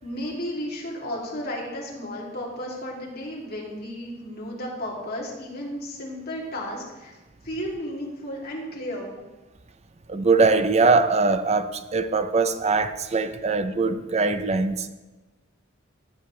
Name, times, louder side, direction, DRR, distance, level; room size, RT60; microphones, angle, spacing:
voice 1, 0.0-7.2 7.4-9.1, equal, 55° left, 2.8 m, -33 dB
voice 2, 10.1-14.9, right 3 dB, 35° right, 0.6 m, -22 dB
14.5 x 7.2 x 3.3 m
head